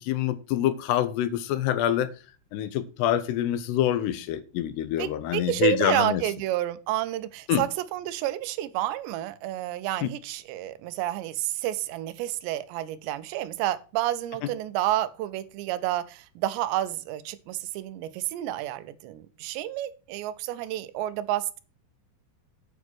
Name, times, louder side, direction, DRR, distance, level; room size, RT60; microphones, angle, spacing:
voice 1, 0.0-2.1 2.5-6.2 7.5-7.6 10.0-10.1, left 11 dB, 80° left, 2.8 m, -26 dB
voice 2, 5.0-21.6, right 14 dB, 85° right, 3.0 m, -30 dB
9.3 x 5.1 x 6.1 m
omnidirectional pair, 5.0 m